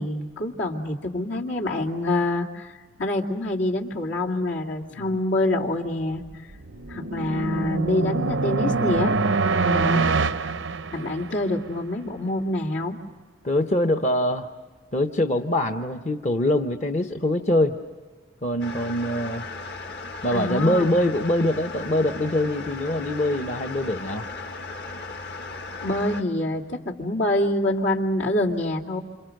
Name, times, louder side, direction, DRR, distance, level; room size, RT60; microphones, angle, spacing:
voice 1, 0.0-6.2 6.9-9.2 9.6-10.1 10.4-10.5 10.9-13.0 20.3-20.8 25.8-29.0, left 1 dB, 75° left, -1 dB, 2.6 m, -26 dB
sound 1, 6.3-11.5, right 4 dB, 85° right, 0.7 m, -24 dB
voice 2, 9.9-10.3 13.4-14.5 14.9-17.8 18.4-19.4 20.2-24.3, left 1 dB, 35° left, 6 dB, 0.9 m, -24 dB
sound 2, 18.6-26.2, left 3 dB, 55° left, 1.6 m, -36 dB
28.5 x 27.5 x 6.5 m, 1.3 s
head